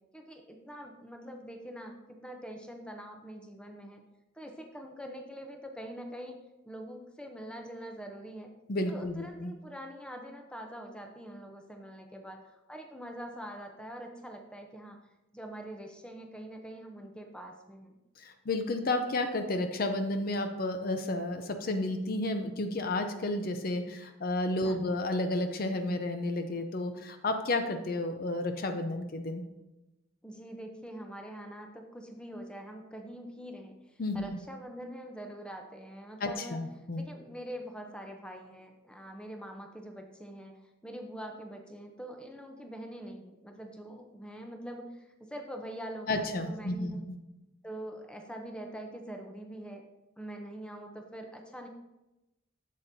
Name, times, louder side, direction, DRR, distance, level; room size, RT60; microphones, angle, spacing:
voice 1, 0.1-4.0 4.3-6.4 6.6-8.5 8.9-15.0 15.3-18.0 24.6-24.8 30.2-36.7 37.0-47.0 47.6-49.8 50.2-51.7, right 1 dB, 5° left, 3 dB, 0.6 m, -44 dB
voice 2, 8.7-9.5 18.2-29.4 34.0-34.4 36.2-37.0 46.1-47.2, left 2 dB, 50° left, 7 dB, 0.5 m, -32 dB
7.8 x 7.4 x 2.7 m, 0.97 s
head